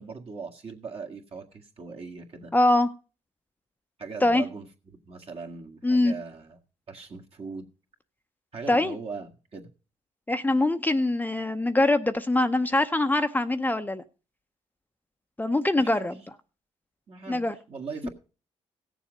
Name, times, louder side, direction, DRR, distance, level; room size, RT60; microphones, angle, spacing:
voice 1, 0.0-2.5 4.0-6.6 6.9-7.7 8.5-9.7 15.8-16.1 17.1-18.1, right 4 dB, 50° right, 1.9 m, -40 dB
voice 2, 2.5-2.9 4.2-4.4 5.8-6.1 8.7-8.9 10.3-14.0 15.4-16.2 17.3-17.5 18.0-18.1, left 2 dB, 15° left, 0.7 m, -23 dB
16.0 x 7.2 x 5.2 m
supercardioid pair, 70°, 13 cm